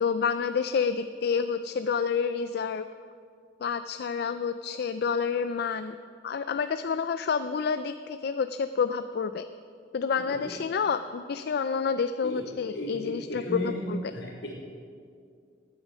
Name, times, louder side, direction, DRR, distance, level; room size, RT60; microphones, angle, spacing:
voice 1, 0.0-2.8 3.6-5.9 6.2-9.4 9.9-14.0, left 6 dB, 60° left, 11 dB, 0.4 m, -29 dB
voice 2, 12.7-13.8 14.1-14.5, equal, 75° left, -4 dB, 3.6 m, -35 dB
17.0 x 9.8 x 5.0 m, 2.3 s
head